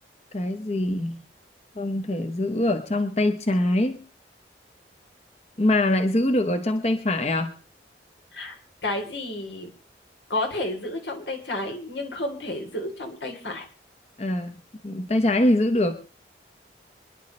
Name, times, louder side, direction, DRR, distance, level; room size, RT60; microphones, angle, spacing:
voice 1, 0.3-1.2 1.8-4.0 5.6-7.5 14.2-14.5 14.8-15.9, left 1 dB, 35° left, 7 dB, 0.9 m, -23 dB
voice 2, 8.8-9.7 10.3-13.6, left 2 dB, 85° left, 3 dB, 3.5 m, -31 dB
25.5 x 11.0 x 3.2 m, 0.35 s
head